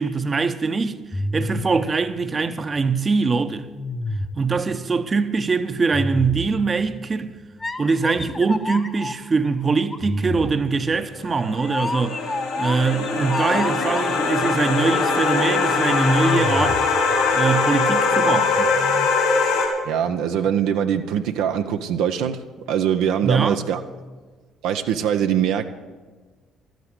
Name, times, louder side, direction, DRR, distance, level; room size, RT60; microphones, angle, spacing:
voice 1, 0.0-3.7 4.4-7.3 7.8-12.2 12.6-16.8 17.3-18.7 23.2-23.6, right 4 dB, 35° right, 0.9 m, -23 dB
sound 1, 1.1-2.9 3.7-4.6 5.9-6.9 7.6-9.2 9.9-14.4 15.7-17.6 18.7-19.1, left 2 dB, 25° left, 1.1 m, -29 dB
sound 2, 11.2-19.7, left 4 dB, 70° left, 3.4 m, -22 dB
voice 2, 19.8-23.8 24.6-25.7, right 9 dB, 70° right, 0.7 m, -22 dB
12.5 x 9.3 x 7.8 m
hypercardioid pair, 50°, 0 cm